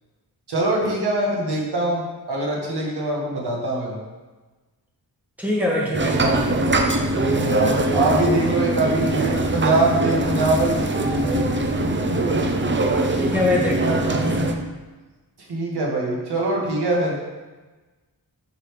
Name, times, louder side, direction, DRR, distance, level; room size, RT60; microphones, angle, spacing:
voice 1, 0.5-4.0 7.1-11.7 15.5-17.2, right 2 dB, 80° right, -2 dB, 1.8 m, -23 dB
voice 2, 5.4-6.5 13.2-14.6, left 1 dB, 5° right, -4 dB, 1.9 m, -24 dB
sound 1, 5.9-14.5, right 2 dB, 30° right, 0.6 m, -22 dB
8.2 x 5.9 x 3.3 m, 1.2 s
wide cardioid pair, 105°, 39 cm